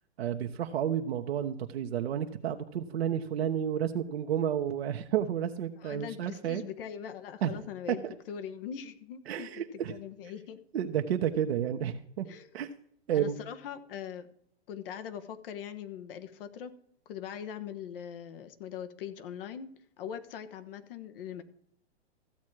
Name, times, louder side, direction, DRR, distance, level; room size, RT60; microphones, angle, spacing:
voice 1, 0.2-6.6 7.4-7.5 7.9-8.1 9.3-9.9 10.7-12.3 12.5-12.7 13.1-13.4, right 9 dB, 65° right, 4 dB, 1.0 m, -31 dB
voice 2, 5.8-8.0 8.3-10.6 12.2-12.5 13.1-14.3 14.7-16.7 17.0-21.4, left 8 dB, 55° left, 9 dB, 1.3 m, -41 dB
14.5 x 7.3 x 4.7 m, 0.66 s
hypercardioid pair, 120°, 33 cm